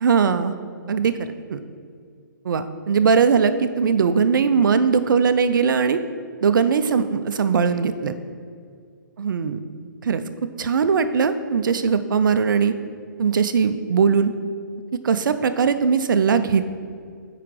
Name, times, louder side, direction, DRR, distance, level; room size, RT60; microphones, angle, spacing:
voice 1, 0.0-0.5 0.9-1.1 1.5-1.6 2.4-6.0 6.4-8.1 9.2-9.6 10.0-10.2 10.6-12.7 13.2-14.3 15.0-16.6, right 6 dB, 70° right, 11 dB, 0.5 m, -20 dB
5.7 x 4.9 x 4.7 m, 2.2 s
hypercardioid pair, 140°, 11 cm